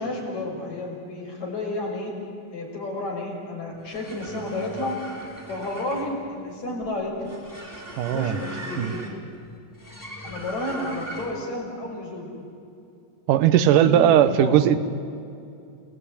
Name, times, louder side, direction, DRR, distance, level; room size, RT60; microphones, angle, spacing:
voice 1, 0.0-2.1 2.5-5.0 5.5-7.4 8.1-9.1 10.2-12.3 13.8-14.6, left 2 dB, 55° left, -1 dB, 7.2 m, -31 dB
sound 1, 3.7-11.5, right 1 dB, 5° left, 3.2 m, -39 dB
voice 2, 8.0-8.4 8.8-8.9 13.3-14.9, right 10 dB, 75° right, 13 dB, 2.6 m, -18 dB
30.0 x 19.5 x 10.0 m, 2.6 s
omnidirectional pair, 3.9 m